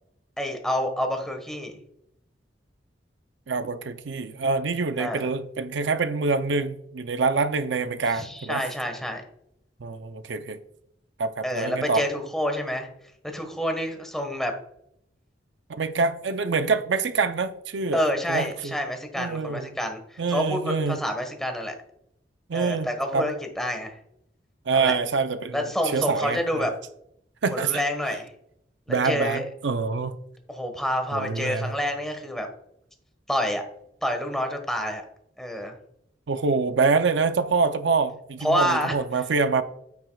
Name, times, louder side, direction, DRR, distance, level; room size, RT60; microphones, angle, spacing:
voice 1, 0.4-1.8 5.0-5.3 8.1-9.2 11.4-12.9 13.3-14.5 17.9-21.7 22.5-23.9 24.7-25.0 25.5-26.7 27.5-28.3 28.9-29.4 30.5-32.5 33.3-33.6 34.0-35.0 35.4-35.7 38.4-38.9, equal, ahead, 1.4 m, -28 dB
voice 2, 3.5-8.6 9.8-10.6 11.2-12.0 15.7-18.0 18.3-18.7 19.2-19.7 20.2-21.0 22.5-22.9 23.1-23.3 24.7-25.6 25.9-26.7 27.4-27.8 28.9-30.2 31.1-31.7 36.3-39.6, right 4 dB, 75° right, 0.6 m, -25 dB
9.4 x 8.8 x 2.3 m
head